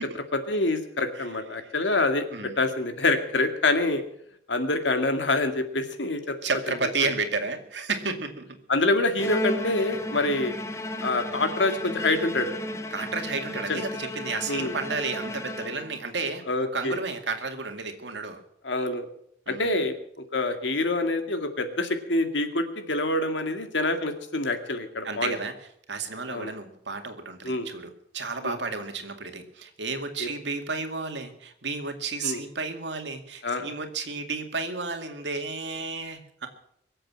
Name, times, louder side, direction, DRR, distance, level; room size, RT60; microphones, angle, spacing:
voice 1, 0.1-4.0 4.5-6.4 6.7-6.8 8.7-10.5 11.0-12.5 13.7-13.8 14.5-14.8 16.5-17.0 18.6-19.0 19.5-25.3 26.3-26.5 27.4-27.7 28.4-28.6 30.2-30.3 32.2-32.4 33.4-33.7, left 2 dB, 80° left, 7 dB, 2.1 m, -26 dB
voice 2, 6.4-8.5 12.9-16.4 16.7-18.4 19.5-19.8 25.0-25.5 25.9-36.5, right 4 dB, 70° right, 5 dB, 2.3 m, -32 dB
Bowed string instrument, 9.2-16.1, equal, 15° left, 1.1 m, -34 dB
23.5 x 7.9 x 7.5 m, 0.70 s
head